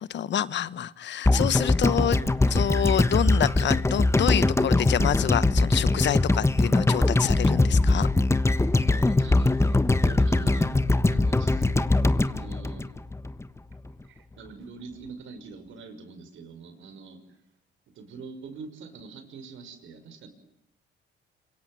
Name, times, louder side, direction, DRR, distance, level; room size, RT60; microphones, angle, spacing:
voice 1, 0.0-2.2 2.5-8.1, left 10 dB, 65° left, 17 dB, 1.2 m, -27 dB
sound 1, 1.2-13.5 13.7-13.8, left 2 dB, 15° left, 1.3 m, -22 dB
voice 2, 8.7-10.8 11.1-12.9 14.0-17.2 17.9-20.3, right 4 dB, 75° right, 9 dB, 6.0 m, -44 dB
26.5 x 24.0 x 9.4 m, 0.85 s
cardioid pair, 90°, 20 cm